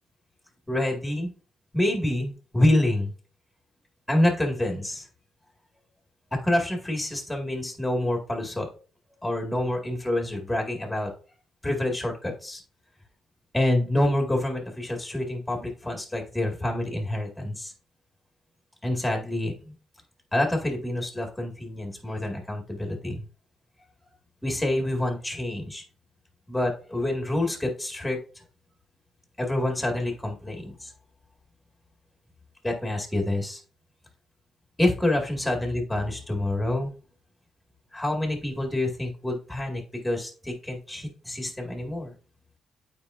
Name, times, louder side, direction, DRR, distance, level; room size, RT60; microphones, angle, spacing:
voice 1, 0.7-1.3 1.7-3.1 4.1-5.1 6.3-8.7 9.2-11.1 11.6-12.6 13.5-17.7 18.8-19.7 20.3-23.2 24.4-25.8 26.5-28.2 29.4-30.9 32.6-33.6 34.8-36.9 37.9-42.1, left 1 dB, 5° left, 1 dB, 2.0 m, -27 dB
8.8 x 4.6 x 2.6 m, 0.38 s
cardioid pair, 90°, 0 cm